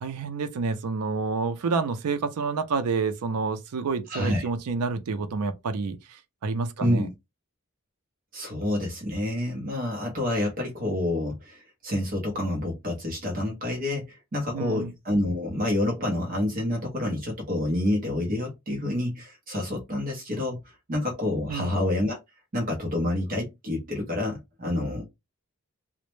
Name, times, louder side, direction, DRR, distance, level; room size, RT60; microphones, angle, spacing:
voice 1, 0.0-7.1 14.5-14.9 21.5-21.8, right 4 dB, 90° right, 0.4 m, -29 dB
voice 2, 4.1-4.5 6.8-7.1 8.3-22.2 22.5-25.0, left 1 dB, 40° right, 0.6 m, -28 dB
2.0 x 2.0 x 3.0 m
head